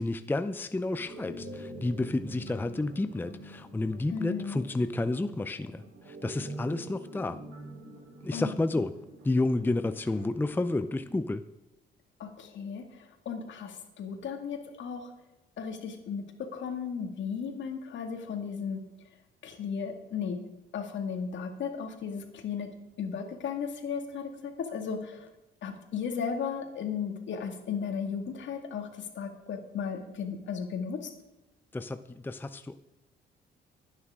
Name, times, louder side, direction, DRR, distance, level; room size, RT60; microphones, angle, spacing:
voice 1, 0.0-7.4 8.2-8.9 9.2-11.5 31.7-32.8, left 2 dB, 10° left, 11 dB, 0.5 m, -31 dB
sound 1, 0.9-11.2, right 1 dB, 80° right, 3.7 m, -46 dB
voice 2, 4.1-4.6 8.3-8.5 12.2-15.1 15.6-18.8 19.4-20.4 20.7-22.7 23.0-25.3 25.6-31.1, left 6 dB, 70° left, 5 dB, 2.1 m, -35 dB
24.0 x 9.8 x 3.7 m, 0.94 s
cardioid pair, 90°, 20 cm